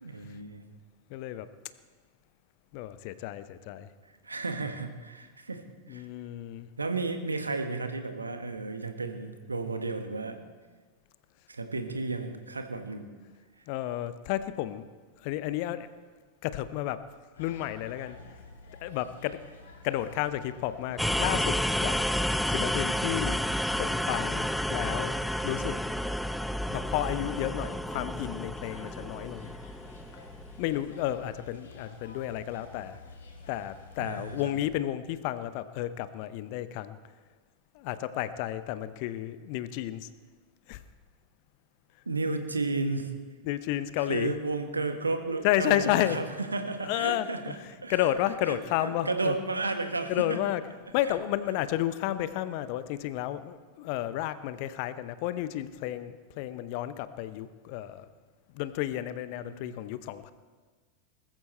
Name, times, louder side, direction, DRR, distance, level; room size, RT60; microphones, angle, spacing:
voice 1, 0.0-0.6 4.2-5.6 5.9-6.1 6.8-10.4 11.5-13.1 34.0-34.5 42.0-43.1 44.0-47.5 47.8-48.1 48.4-50.4 51.0-51.1 59.4-59.8, right 3 dB, 80° right, 7 dB, 1.5 m, -33 dB
voice 2, 1.1-1.5 2.7-3.9 5.9-6.7 13.7-14.9 15.2-15.9 16.4-17.0 17.4-18.2 18.8-19.4 19.8-22.0 22.5-23.4 23.8-25.8 26.7-29.5 30.6-33.0 33.5-37.0 37.7-40.1 40.7-40.8 43.4-44.3 45.4-46.2 46.8-49.3 50.1-50.6 50.9-58.1 58.5-60.3, left 13 dB, 45° left, 14 dB, 0.8 m, -32 dB
sound 1, 17.3-34.7, left 3 dB, 65° left, 3.7 m, -50 dB
sound 2, 21.0-30.7, equal, ahead, 0.4 m, -30 dB
20.0 x 14.0 x 4.4 m, 1.4 s
figure-of-eight pair, 90°, 0 cm